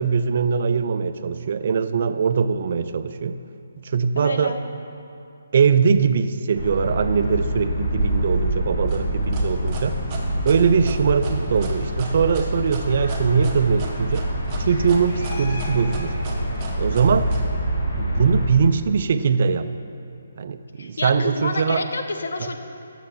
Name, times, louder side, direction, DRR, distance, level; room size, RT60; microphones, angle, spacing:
voice 1, 0.0-3.4 3.8-4.6 5.5-10.0 10.5-14.3 14.6-16.1 16.8-17.3 17.9-19.7 20.4-21.8 22.4-22.5, right 6 dB, 50° right, 12 dB, 0.3 m, -21 dB
voice 2, 4.2-4.6 20.8-22.6, left 3 dB, 80° left, 6 dB, 0.7 m, -28 dB
sound 1, 6.5-18.5, right 1 dB, 55° left, 1.6 m, -26 dB
sound 2, 8.9-17.4, right 4 dB, 20° right, 0.9 m, -38 dB
6.6 x 5.9 x 6.5 m, 2.6 s
hypercardioid pair, 160°, 0 cm